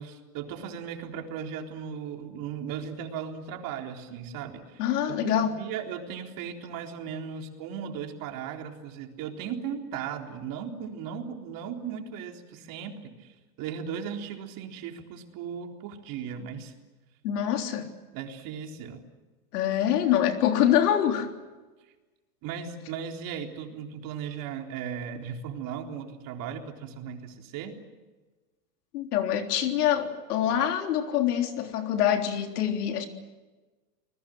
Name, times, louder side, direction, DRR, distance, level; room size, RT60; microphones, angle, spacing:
voice 1, 0.0-16.7 18.1-19.0 22.4-27.7, right 7 dB, 45° right, 3 dB, 3.9 m, -37 dB
voice 2, 4.8-5.5 17.2-17.9 19.5-21.3 28.9-33.1, left 10 dB, 80° left, 5 dB, 3.7 m, -25 dB
29.0 x 20.5 x 7.9 m, 1.2 s
supercardioid pair, 130°, 46 cm